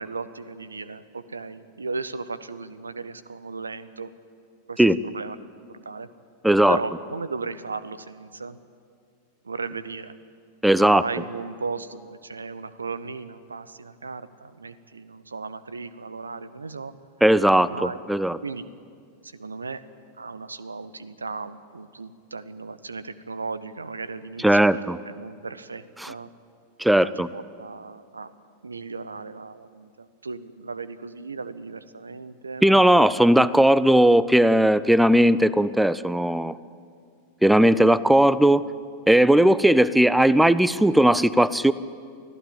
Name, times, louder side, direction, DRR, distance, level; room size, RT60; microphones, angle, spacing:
voice 1, 0.0-4.1 4.7-5.4 5.7-6.1 6.7-8.6 9.4-10.1 10.8-16.9 17.7-18.0 18.4-18.7 19.2-19.8 20.2-26.3 27.0-28.3 28.6-32.7, right 4 dB, 75° right, 16 dB, 0.8 m, -36 dB
voice 2, 6.4-6.8 10.6-11.0 17.2-18.4 24.4-25.0 26.0-26.1 26.8-27.3 32.6-36.6 37.4-38.7 39.1-41.7, right 1 dB, 5° right, 18 dB, 0.6 m, -18 dB
24.5 x 15.5 x 8.9 m, 2.2 s
figure-of-eight pair, 90°, 0 cm